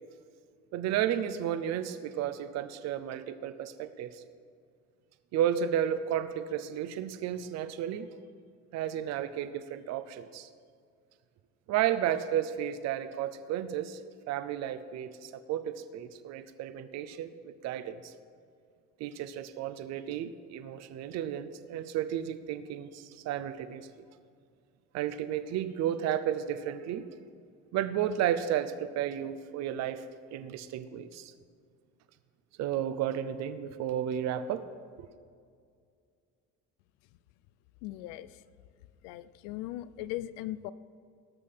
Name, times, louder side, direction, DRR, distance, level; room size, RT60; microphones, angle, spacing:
voice 1, 0.7-4.2 5.3-8.1 8.7-10.5 11.7-14.0 14.3-18.1 19.0-24.1 24.9-27.1 27.7-31.3 32.6-34.7 35.0-35.1, right 10 dB, 65° right, 12 dB, 0.8 m, -33 dB
voice 2, 37.8-38.4 39.0-40.7, left 14 dB, 90° left, 16 dB, 0.5 m, -39 dB
18.5 x 6.5 x 5.7 m, 2.2 s
cardioid pair, 105°, 29 cm